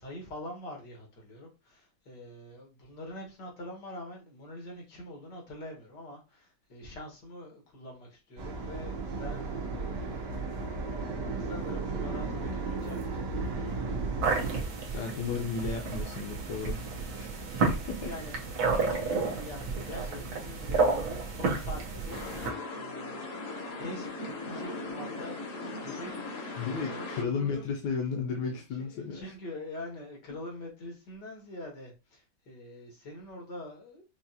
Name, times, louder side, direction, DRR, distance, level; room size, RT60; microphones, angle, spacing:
voice 1, 0.0-10.4 11.4-13.5 18.1-23.4 23.7-27.7 28.5-34.0, left 1 dB, 90° left, 2.3 m, -44 dB
sound 1, 8.4-14.6, right 3 dB, 90° right, 1.6 m, -34 dB
sound 2, 14.2-22.5, right 4 dB, 65° right, 1.4 m, -31 dB
voice 2, 14.9-16.8 17.1-17.4 17.9-18.1 26.6-29.3, left 5 dB, 75° left, 1.4 m, -34 dB
sound 3, 22.1-27.2, left 2 dB, 55° left, 1.1 m, -38 dB
5.8 x 2.5 x 2.7 m
omnidirectional pair, 1.8 m